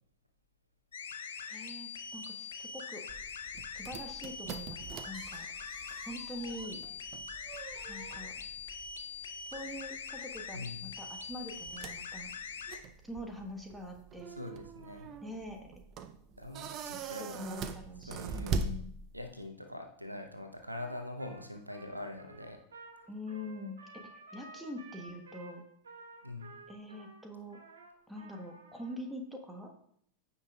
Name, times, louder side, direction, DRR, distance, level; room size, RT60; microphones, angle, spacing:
sound 1, 0.9-12.8, left 6 dB, 65° left, 0.8 m, -43 dB
voice 1, 1.5-3.0 3.7-5.5 6.0-6.8 7.9-8.4 9.5-12.3 13.0-14.3 15.2-15.7 16.9-18.9 23.1-23.8 24.1-25.6 26.7-27.6 28.1-29.7, left 1 dB, 5° right, 3 dB, 1.3 m, -44 dB
sound 2, 3.1-19.5, right 4 dB, 35° right, 0.6 m, -43 dB
voice 2, 10.5-11.0 14.3-15.1 16.4-17.4 18.1-18.7 19.1-22.6 26.2-26.6, left 1 dB, 85° right, 6 dB, 0.9 m, -43 dB
Trumpet, 20.7-29.0, right 2 dB, 65° right, 2.7 m, -53 dB
15.0 x 5.8 x 2.4 m, 0.68 s
figure-of-eight pair, 90°, 0 cm